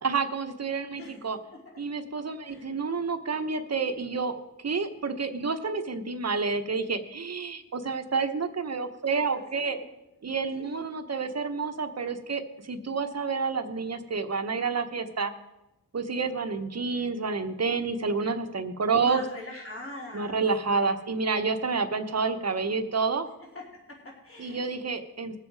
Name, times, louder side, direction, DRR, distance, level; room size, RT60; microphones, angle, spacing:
voice 1, 0.0-1.4 1.8-9.8 10.2-15.3 15.9-19.2 20.1-23.3 24.4-25.4, right 4 dB, 40° right, 7 dB, 1.1 m, -29 dB
voice 2, 2.4-2.7 9.1-9.9 10.5-10.8 19.0-20.4 23.5-23.6 23.9-24.6, left 2 dB, 35° left, -2 dB, 3.0 m, -43 dB
19.5 x 7.4 x 4.7 m, 0.98 s
wide cardioid pair, 110°, 38 cm